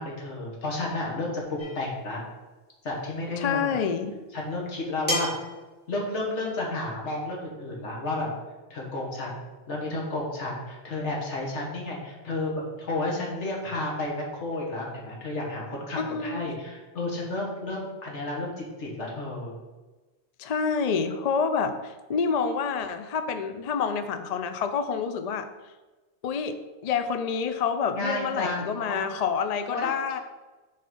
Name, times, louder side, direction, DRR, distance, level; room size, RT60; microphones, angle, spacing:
voice 1, 0.0-2.2 2.8-3.8 4.3-5.3 5.9-8.3 8.7-9.4 9.7-19.5 27.9-29.1 29.7-29.9, left 2 dB, 75° left, -2 dB, 1.9 m, -32 dB
sound 1, 1.6-1.9 3.5-3.6 5.1-5.5, equal, 10° right, 1.8 m, -30 dB
voice 2, 3.4-4.2 16.0-16.5 20.4-25.5 26.2-30.2, left 6 dB, 55° left, 9 dB, 0.4 m, -28 dB
6.4 x 4.1 x 5.3 m, 1.2 s
omnidirectional pair, 1.2 m